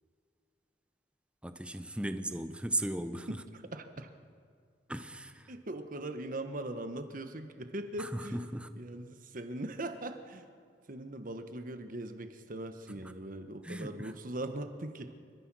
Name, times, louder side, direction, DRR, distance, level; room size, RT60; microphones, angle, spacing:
voice 1, 1.4-3.3 4.9-5.5 8.0-8.7 13.6-14.1, right 1 dB, 5° right, 10 dB, 0.8 m, -36 dB
voice 2, 2.0-2.3 3.3-4.1 5.5-8.4 8.8-10.5 10.8-15.2, right 1 dB, 50° right, 8 dB, 1.3 m, -40 dB
29.5 x 14.0 x 6.2 m, 2.2 s
head